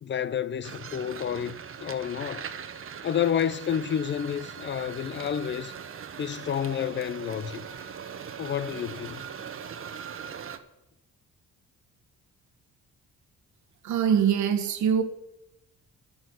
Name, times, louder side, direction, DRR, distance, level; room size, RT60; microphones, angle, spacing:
voice 1, 0.0-2.5 3.0-5.7 6.2-7.6 8.4-9.2, left 8 dB, 40° left, 0.5 m, -30 dB
sound 1, 0.6-10.6, right 7 dB, 45° right, 1.0 m, -40 dB
voice 2, 13.8-15.0, right 8 dB, 70° right, 1.3 m, -23 dB
12.5 x 4.5 x 7.9 m
cardioid pair, 90°, 30 cm